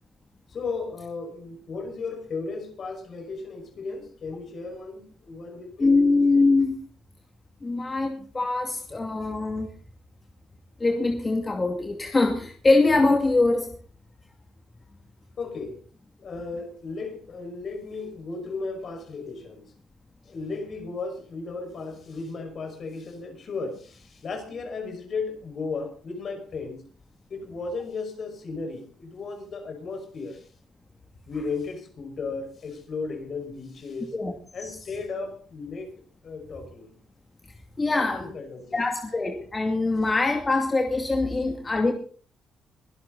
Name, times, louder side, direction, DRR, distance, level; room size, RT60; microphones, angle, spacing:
voice 1, 0.5-6.0 15.4-15.8 16.2-19.7 20.2-26.8 27.3-30.5 31.3-34.1 34.5-37.0 37.9-38.8, left 4 dB, 50° left, 5.5 m, -35 dB
voice 2, 5.8-6.8 7.6-9.7 10.8-13.7 34.1-34.3 34.6-34.8 37.8-38.4 38.7-41.9, left 3 dB, 25° left, 2.4 m, -23 dB
22.5 x 12.0 x 4.0 m
cardioid pair, 90°, 0 cm